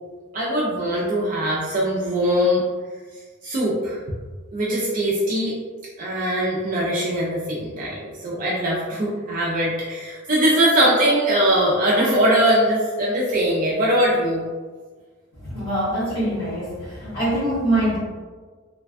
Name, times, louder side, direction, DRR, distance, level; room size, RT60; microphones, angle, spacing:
voice 1, 0.3-2.6 3.4-4.0 4.5-5.5 6.0-14.4, right 1 dB, 40° right, -6 dB, 0.4 m, -21 dB
voice 2, 15.4-18.0, right 1 dB, 50° left, -17 dB, 1.4 m, -24 dB
3.2 x 2.2 x 2.4 m, 1.5 s
head